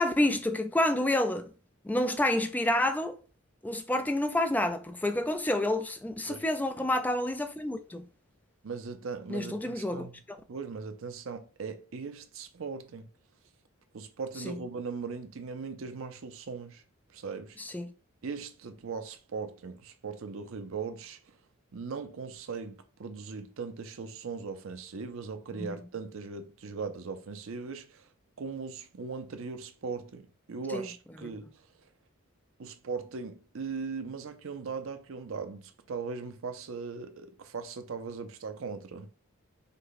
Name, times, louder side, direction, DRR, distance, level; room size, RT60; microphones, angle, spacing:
voice 1, 0.0-1.5 1.8-3.2 3.6-8.1 9.3-10.4 14.5-14.6 17.6-17.9 25.6-25.8 30.7-30.9 31.2-31.3, left 1 dB, 5° left, 0.3 m, -29 dB
voice 2, 8.6-10.1 10.5-13.1 13.9-16.8 17.1-17.6 18.2-21.4 21.7-28.1 28.4-31.7 32.6-39.1, right 5 dB, 70° right, 0.5 m, -39 dB
5.2 x 2.1 x 4.0 m
head